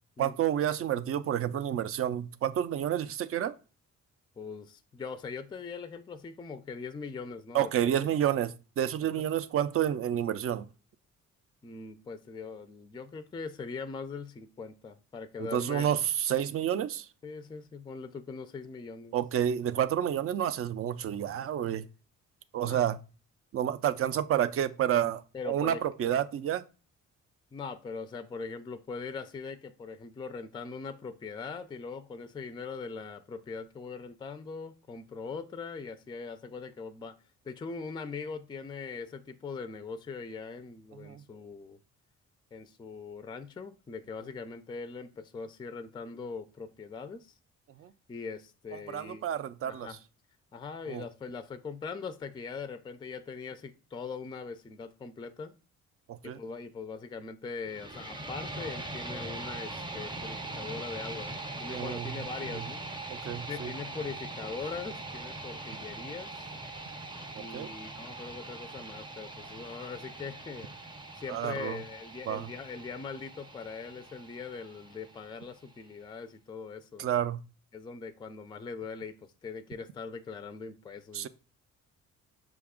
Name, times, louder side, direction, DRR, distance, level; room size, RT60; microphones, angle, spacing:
voice 1, 0.2-3.6 7.5-10.7 15.4-17.1 19.1-21.9 22.5-23.0 23.5-26.6 41.0-41.2 47.8-47.9 48.7-49.9 50.9-51.0 56.1-56.4 61.7-62.1 63.1-63.7 67.3-67.7 71.3-71.8 72.3-72.5 77.0-77.4 81.1-81.3, right 10 dB, 50° right, 0.4 m, -30 dB
voice 2, 4.4-7.9 9.2-9.3 11.6-15.9 17.2-19.1 22.6-22.8 25.3-25.8 27.5-37.2 37.4-41.8 42.5-47.4 48.1-49.2 49.7-50.0 50.5-55.5 56.2-62.8 63.5-66.5 67.4-70.7 71.1-77.1 77.7-79.2 79.4-81.3, left 5 dB, 15° left, 0.3 m, -41 dB
ra scream, 57.6-75.7, right 2 dB, 15° right, 0.7 m, -42 dB
5.9 x 2.3 x 3.5 m
cardioid pair, 90°, 30 cm